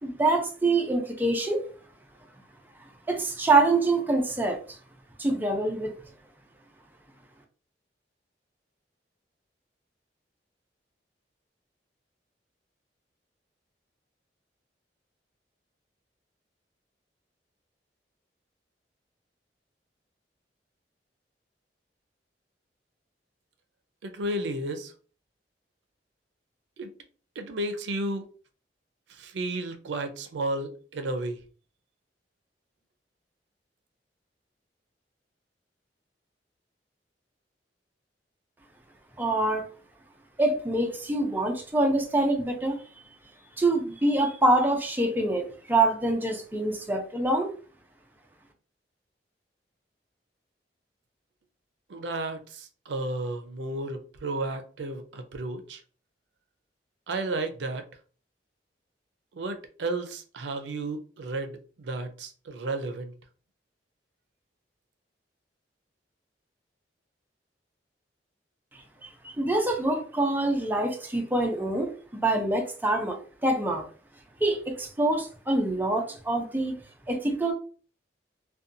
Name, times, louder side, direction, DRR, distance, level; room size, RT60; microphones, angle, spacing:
voice 1, 0.0-1.6 3.1-4.8 5.2-6.0 39.2-39.7 40.4-42.8 43.6-47.5 69.2-73.9 74.4-76.7 77.1-77.5, right 2 dB, 10° right, 0.4 m, -25 dB
voice 2, 24.0-24.9 26.8-26.9 27.4-28.2 29.1-31.4 51.9-55.8 57.1-57.8 59.3-63.1, right 2 dB, 85° right, 0.4 m, -33 dB
2.6 x 2.2 x 2.5 m
head